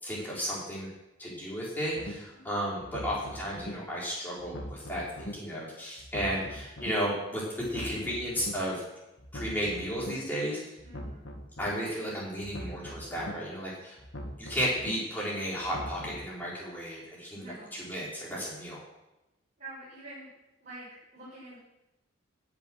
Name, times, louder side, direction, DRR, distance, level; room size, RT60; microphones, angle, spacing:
voice 1, 0.0-0.9 1.2-8.8 9.3-10.6 11.6-14.0 14.4-18.8, equal, 10° left, -6 dB, 4.5 m, -33 dB
sound 1, 2.0-2.1 2.8-3.7 4.4-5.3 6.0-6.9 7.6-8.5 9.2-10.1 10.8-11.7 12.4-13.3 14.0-14.9 15.6-16.3, equal, 60° left, 1.8 m, -41 dB
voice 2, 10.8-11.3 17.3-17.7 19.6-20.3 20.6-21.6, right 2 dB, 35° right, -10 dB, 6.3 m, -46 dB
16.0 x 7.4 x 6.3 m, 0.96 s
head